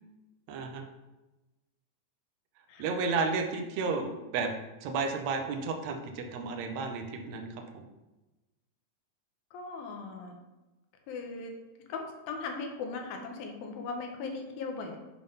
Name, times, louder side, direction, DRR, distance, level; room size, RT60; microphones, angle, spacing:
voice 1, 0.5-0.8 2.8-4.5 4.8-7.9, right 4 dB, 80° right, 3 dB, 1.6 m, -32 dB
voice 2, 9.5-10.4 11.1-11.5 11.9-15.0, left 4 dB, 90° left, 3 dB, 2.7 m, -38 dB
7.5 x 3.6 x 5.5 m, 1.1 s
omnidirectional pair, 4.1 m